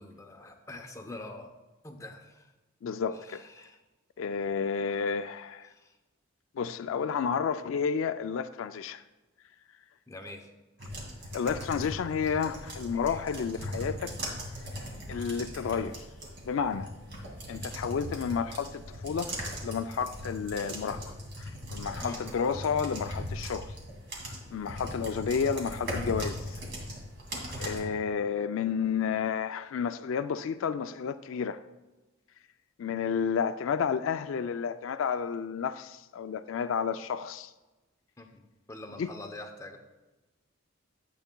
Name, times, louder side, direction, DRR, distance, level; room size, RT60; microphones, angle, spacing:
voice 1, 0.0-1.5 1.8-2.5 3.2-3.8 5.7-5.9 10.1-10.5 12.9-13.2 22.0-22.4 27.4-27.7 38.2-38.3 38.7-39.8, left 2 dB, 15° left, 0.7 m, -45 dB
voice 2, 2.8-3.5 4.2-5.7 6.5-9.0 11.3-14.1 15.1-16.0 16.4-16.9 17.5-19.3 19.6-21.1 21.7-23.7 24.5-26.6 27.6-31.6 32.8-37.5 39.0-39.1, left 6 dB, 70° left, 0.4 m, -31 dB
sound 1, 10.8-27.8, equal, 55° right, 2.4 m, -39 dB
12.5 x 8.3 x 2.3 m
head